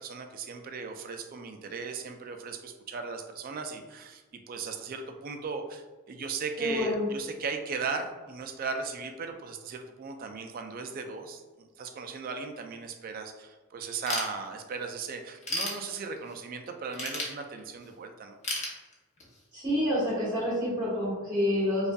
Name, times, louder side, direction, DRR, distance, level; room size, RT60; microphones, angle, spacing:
voice 1, 0.0-18.4, right 4 dB, 40° right, 5 dB, 0.3 m, -37 dB
voice 2, 6.6-7.0 19.5-21.9, left 1 dB, 20° right, -7 dB, 1.4 m, -28 dB
Ratchet pawl / Tools, 14.1-14.9 15.2-16.4 16.9-17.9 18.4-19.4, left 2 dB, 30° left, 0.7 m, -34 dB
5.1 x 2.4 x 2.2 m, 1.2 s
head